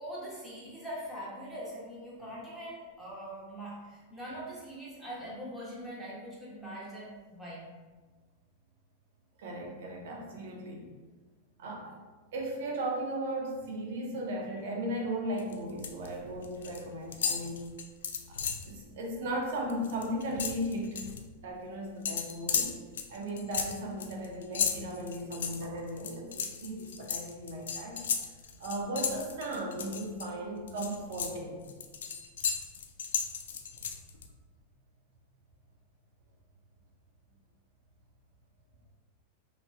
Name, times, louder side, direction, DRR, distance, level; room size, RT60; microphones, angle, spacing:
voice 1, 0.0-7.6, equal, 5° right, -8 dB, 1.1 m, -42 dB
voice 2, 9.4-10.8 11.6-12.0 12.3-17.6 18.3-18.4 18.7-21.0 21.4-22.8 23.1-28.0 28.6-31.6, right 1 dB, 70° right, -1 dB, 0.8 m, -36 dB
sound 1, 15.4-16.1 16.3-16.8 17.1-18.7 19.1-19.3 19.6-21.2 22.0-30.3 30.7-34.3, left 7 dB, 85° left, 0.3 m, -34 dB
2.9 x 2.9 x 2.3 m, 1.4 s
hypercardioid pair, 125°, 0 cm